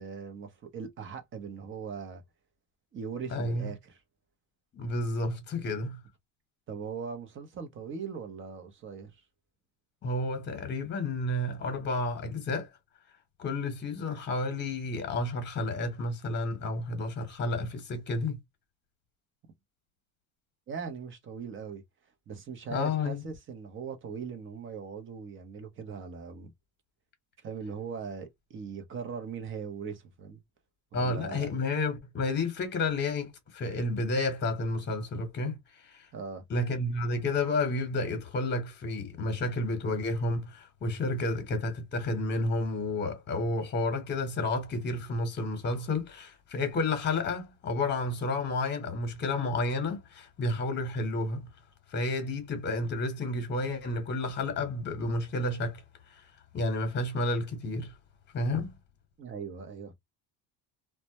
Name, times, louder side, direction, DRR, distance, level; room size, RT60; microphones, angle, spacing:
voice 1, 0.0-2.2 2.9-4.0 6.7-9.2 20.7-21.8 22.3-26.5 27.4-30.4 30.9-31.5 36.1-36.4 59.2-59.9, right 6 dB, 35° right, 0.7 m, -40 dB
voice 2, 3.3-3.7 4.7-6.0 10.0-12.7 13.4-18.4 22.7-23.2 30.9-35.6 35.8-36.1 36.5-51.5 51.9-55.8 56.5-57.9 58.3-58.7, left 2 dB, 30° left, 1.0 m, -31 dB
2.2 x 2.0 x 2.8 m
cardioid pair, 120°, 35 cm